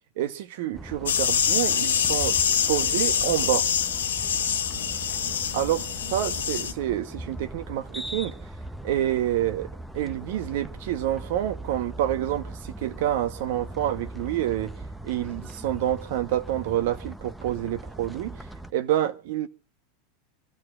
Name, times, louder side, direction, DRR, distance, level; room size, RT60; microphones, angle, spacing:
voice 1, 0.2-2.4 2.7-3.7 5.5-8.3 8.8-14.7 15.0-18.5 18.7-19.5, right 12 dB, 65° right, 1.1 m, -28 dB
sound 1, 0.7-18.7, right 1 dB, 5° right, 0.8 m, -40 dB
sound 2, 1.1-6.7, left 8 dB, 85° left, 0.9 m, -25 dB
28.0 x 14.5 x 2.5 m
hypercardioid pair, 95°, 0 cm